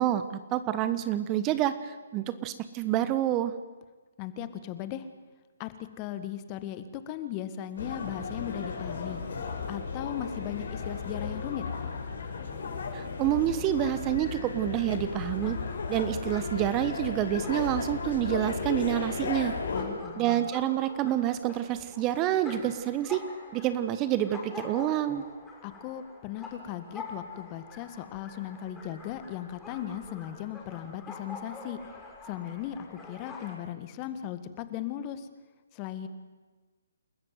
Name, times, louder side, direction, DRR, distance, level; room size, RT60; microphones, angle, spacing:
voice 1, 0.0-3.5 12.9-15.6 15.9-19.5 20.2-23.2 23.5-25.2, right 12 dB, 25° right, 12 dB, 1.1 m, -28 dB
voice 2, 4.2-5.1 5.6-9.2 9.7-11.7 19.7-20.5 25.6-31.8 32.2-35.3 35.7-36.1, left 11 dB, 25° left, 11 dB, 1.7 m, -37 dB
sound 1, 7.8-19.8, left 5 dB, 60° left, 6.0 m, -35 dB
sound 2, 15.1-33.6, left 3 dB, 10° left, 6.5 m, -46 dB
28.5 x 14.0 x 9.4 m, 1.3 s
figure-of-eight pair, 140°, 0 cm